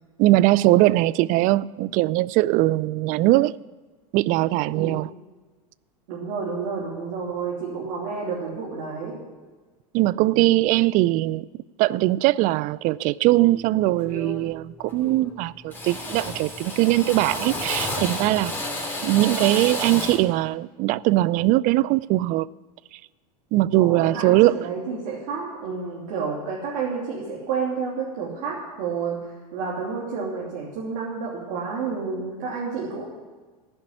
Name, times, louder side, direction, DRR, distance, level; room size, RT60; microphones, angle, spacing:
voice 1, 0.2-3.5 4.1-5.1 9.9-11.5 11.8-18.5 19.0-22.5 23.5-24.6, right 17 dB, 45° right, 0.4 m, -21 dB
voice 2, 4.6-5.0 6.1-9.2 23.5-29.2 29.5-33.0, right 5 dB, 65° right, 3.0 m, -30 dB
Drill, 13.4-13.6 14.0-14.5 14.8-15.4 15.7-20.3, left 1 dB, 10° left, 3.3 m, -31 dB
16.0 x 5.4 x 9.8 m
hypercardioid pair, 105°, 19 cm